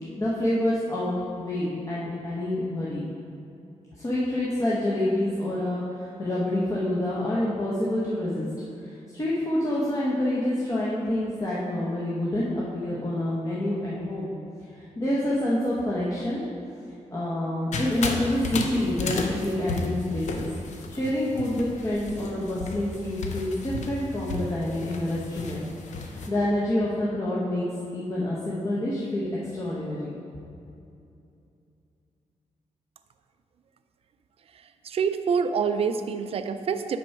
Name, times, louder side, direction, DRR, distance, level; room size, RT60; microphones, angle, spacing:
voice 1, 0.2-3.0 4.0-8.5 8.8-14.3 15.0-16.4 17.1-20.5 20.9-25.6 26.0-27.6 27.9-30.1, left 1 dB, 25° left, -7 dB, 0.9 m, -27 dB
sound 1, 17.7-26.3, left 3 dB, 75° left, 0.7 m, -34 dB
voice 2, 34.8-37.0, right 6 dB, 50° right, 9 dB, 0.3 m, -26 dB
6.0 x 4.3 x 5.8 m, 2.6 s
wide cardioid pair, 155°, 13 cm